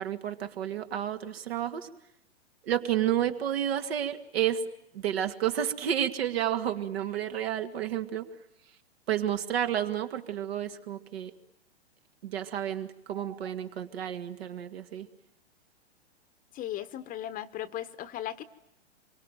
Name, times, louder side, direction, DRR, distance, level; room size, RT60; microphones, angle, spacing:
voice 1, 0.0-1.9 2.6-4.6 4.9-8.3 9.1-11.3 12.2-15.1, right 10 dB, 60° right, 8 dB, 2.1 m, -31 dB
voice 2, 16.5-18.4, left 12 dB, 25° left, 13 dB, 1.1 m, -37 dB
26.0 x 24.0 x 9.2 m, 0.82 s
figure-of-eight pair, 110°, 34 cm